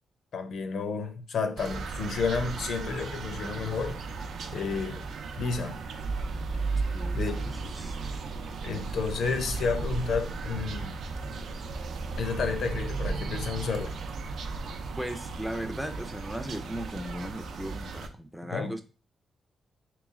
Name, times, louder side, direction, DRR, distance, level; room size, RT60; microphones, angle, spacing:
voice 1, 0.3-4.0 4.5-5.0 5.4-5.8 7.1-7.5 8.6-11.0 12.2-14.0 18.5-18.7, left 5 dB, 65° left, 0.6 m, -31 dB
sound 1, 1.6-18.1, right 3 dB, 65° right, 0.5 m, -35 dB
voice 2, 6.9-8.0 15.0-18.8, equal, ahead, 0.4 m, -37 dB
3.1 x 3.1 x 3.6 m
cardioid pair, 130°, 0 cm